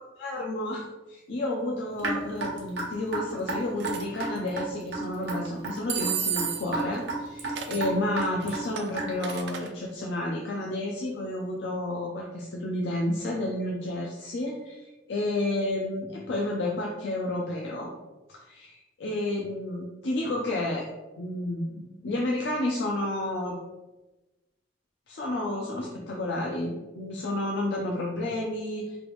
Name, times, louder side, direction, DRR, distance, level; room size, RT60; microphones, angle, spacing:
voice 1, 0.2-17.9 18.3-20.9 21.2-23.6 25.1-29.0, left 1 dB, 80° left, -2 dB, 0.4 m, -31 dB
Raindrop / Drip, 2.0-9.3, right 3 dB, 90° right, 0.9 m, -33 dB
sound 1, 3.8-4.0 5.9-6.8 7.6-7.9 8.4-9.7, right 8 dB, 70° right, 0.4 m, -32 dB
3.3 x 2.5 x 3.0 m, 1.1 s
head